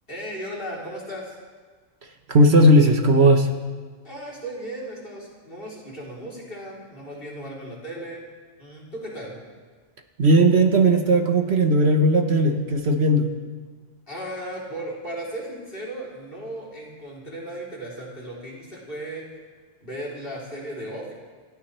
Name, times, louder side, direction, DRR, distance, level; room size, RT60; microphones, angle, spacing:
voice 1, 0.1-1.3 4.0-8.2 8.6-9.3 14.1-19.3 19.8-21.1, right 1 dB, 45° left, -4 dB, 3.8 m, -36 dB
voice 2, 2.3-3.5 10.2-13.3, right 1 dB, 60° right, 5 dB, 1.3 m, -17 dB
28.5 x 14.0 x 3.3 m, 1.5 s
omnidirectional pair, 1.3 m